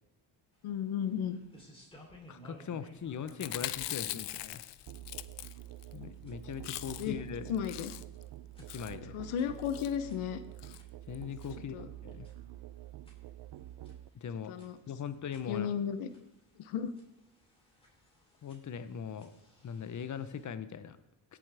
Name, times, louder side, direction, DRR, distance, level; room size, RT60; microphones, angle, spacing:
sound 1, 0.5-20.4, equal, 10° left, 3.6 m, -60 dB
voice 1, 0.6-1.4 7.0-7.2 7.5-7.9 9.1-10.4 11.7-11.9 14.5-14.8 15.5-16.1 16.6-16.9, left 8 dB, 85° left, 11 dB, 0.9 m, -34 dB
voice 2, 2.3-4.6 5.9-7.5 8.7-9.2 11.1-11.7 12.0-12.3 14.1-14.5 14.9-15.7 18.4-19.3 19.6-21.0, left 7 dB, 40° left, 11 dB, 0.9 m, -40 dB
Chewing mastication, 3.3-5.9 6.2-6.3 6.5-7.2 7.5-8.2 8.7-9.0 9.6-9.9 10.6-10.8 11.1-11.2 11.4-11.5, left 14 dB, 60° left, 0.6 m, -41 dB
Musical instrument, 4.9-14.1, right 14 dB, 55° right, 0.5 m, -48 dB
17.0 x 7.2 x 3.5 m, 0.96 s
cardioid pair, 90°, 48 cm